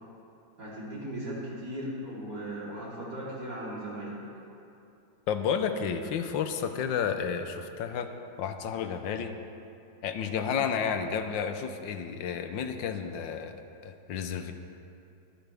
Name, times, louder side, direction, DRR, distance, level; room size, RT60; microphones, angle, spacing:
voice 1, 0.6-4.2 10.2-10.5, right 1 dB, 60° right, -8 dB, 4.2 m, -38 dB
voice 2, 5.3-8.1 8.4-9.3 10.0-14.5, left 7 dB, 90° left, 8 dB, 1.5 m, -31 dB
22.5 x 10.5 x 3.5 m, 2.6 s
omnidirectional pair, 2.0 m